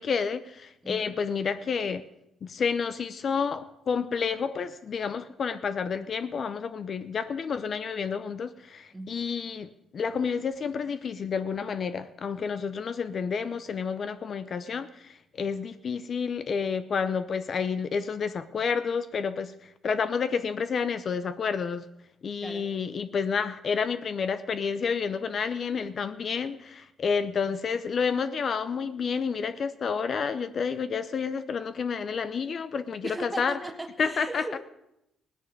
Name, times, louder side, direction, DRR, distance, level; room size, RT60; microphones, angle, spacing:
voice 1, 0.0-2.0 2.4-21.9 22.2-33.6 34.0-34.6, left 6 dB, 50° left, 12 dB, 0.6 m, -30 dB
voice 2, 0.8-1.2 8.9-9.2 22.4-22.7 33.0-34.6, right 2 dB, 15° right, 7 dB, 1.4 m, -38 dB
17.5 x 10.0 x 5.3 m, 0.84 s
cardioid pair, 90°, 0 cm